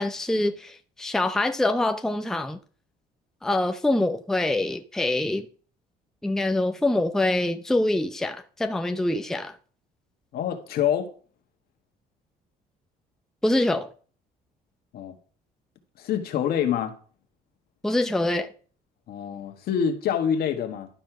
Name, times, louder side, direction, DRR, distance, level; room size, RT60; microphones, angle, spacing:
voice 1, 0.0-2.6 3.4-5.5 6.2-9.5 13.4-13.9 17.8-18.5, left 1 dB, 5° left, 0.6 m, -25 dB
voice 2, 10.3-11.1 14.9-15.2 16.0-16.9 19.1-20.9, left 8 dB, 65° left, 1.6 m, -26 dB
11.5 x 4.3 x 6.0 m
cardioid pair, 110°, 17 cm